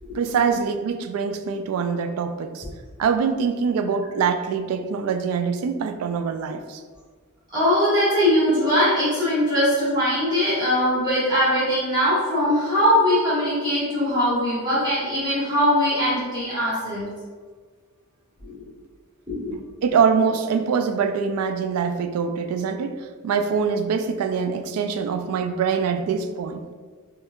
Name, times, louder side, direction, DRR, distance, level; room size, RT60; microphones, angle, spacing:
voice 1, 0.1-2.7 3.0-6.8 19.5-22.9 23.2-26.7, right 6 dB, 85° right, 11 dB, 0.3 m, -24 dB
voice 2, 7.5-17.0 18.4-18.7 19.3-19.5, equal, 20° right, -11 dB, 1.2 m, -21 dB
4.3 x 2.3 x 2.3 m, 1.5 s
head